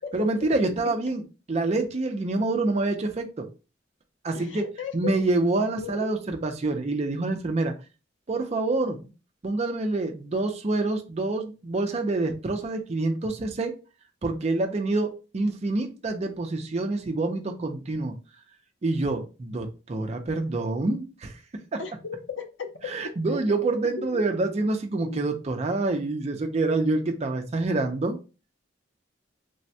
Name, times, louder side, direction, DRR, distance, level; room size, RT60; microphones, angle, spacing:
voice 1, 0.1-1.2 1.5-3.5 4.2-4.6 4.9-7.7 8.3-9.1 9.4-13.7 14.2-18.1 18.8-21.4 21.7-21.8 22.9-28.2, right 2 dB, 35° right, 4 dB, 0.5 m, -27 dB
voice 2, 4.3-5.2 5.8-6.1 21.8-22.7 23.3-23.7 24.0-24.2 24.9-25.3, left 6 dB, 80° left, 6 dB, 0.6 m, -36 dB
3.3 x 2.1 x 2.7 m, 0.32 s
head